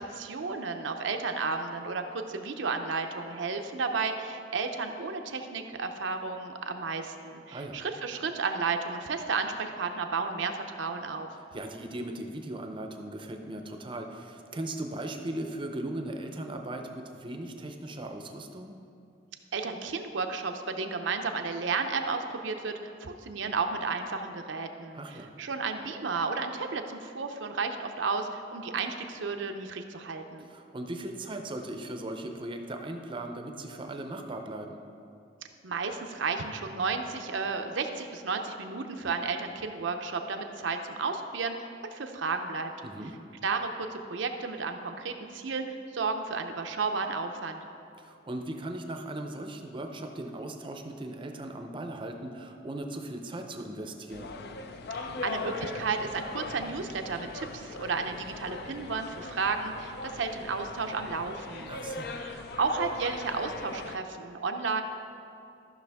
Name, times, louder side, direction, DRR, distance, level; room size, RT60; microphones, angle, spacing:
voice 1, 0.0-11.3 19.5-25.0 25.4-30.5 35.6-42.7 43.4-45.6 45.9-47.6 54.9-61.7 62.2-64.8, right 4 dB, 70° right, 5 dB, 0.6 m, -32 dB
voice 2, 11.5-18.7 24.9-25.3 30.4-34.8 42.8-43.2 48.0-54.3 61.7-62.2, right 1 dB, 25° right, 4 dB, 0.6 m, -38 dB
sound 1, 54.1-64.0, left 3 dB, 55° left, 0.5 m, -40 dB
13.5 x 6.0 x 3.5 m, 2.6 s
head